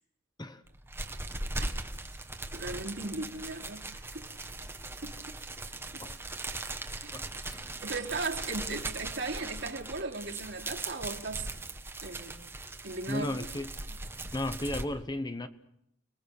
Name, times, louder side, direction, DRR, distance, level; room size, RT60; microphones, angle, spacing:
sound 1, 0.7-14.8, right 2 dB, 10° right, 1.5 m, -39 dB
voice 1, 2.5-4.3 5.0-5.4 7.0-7.2 7.8-11.5 12.0-12.4 12.8-13.5, right 3 dB, 65° right, 3.4 m, -37 dB
voice 2, 7.1-7.7 13.1-13.7 14.3-15.5, left 1 dB, 20° left, 1.0 m, -34 dB
30.0 x 21.0 x 6.7 m
head